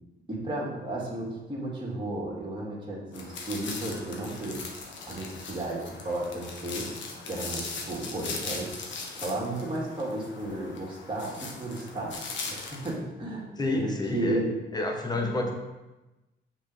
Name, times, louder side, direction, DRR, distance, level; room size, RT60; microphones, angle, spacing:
voice 1, 0.3-4.6 5.1-7.0 7.3-14.5 15.1-15.3, right 2 dB, 25° right, -4 dB, 2.1 m, -34 dB
sound 1, 3.1-12.9, left 4 dB, 70° left, 1.2 m, -39 dB
voice 2, 13.6-14.4 14.7-15.5, left 2 dB, 20° left, 2 dB, 1.2 m, -28 dB
6.4 x 4.0 x 4.9 m, 1.1 s
cardioid pair, 90°, 20 cm